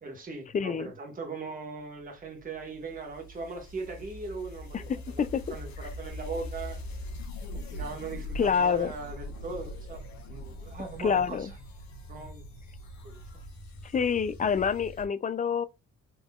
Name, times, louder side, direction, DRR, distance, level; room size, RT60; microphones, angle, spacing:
voice 1, 0.0-5.2 5.5-6.8 7.5-10.0 10.3-11.5 12.1-12.4 13.0-13.2, right 4 dB, 30° right, 1.3 m, -39 dB
voice 2, 0.5-0.9 4.7-5.4 8.4-8.9 11.0-11.5 13.9-15.6, left 6 dB, 25° left, 0.4 m, -27 dB
sound 1, 2.2-15.1, left 1 dB, 65° left, 1.3 m, -42 dB
3.7 x 2.9 x 2.3 m
cardioid pair, 90°, 30 cm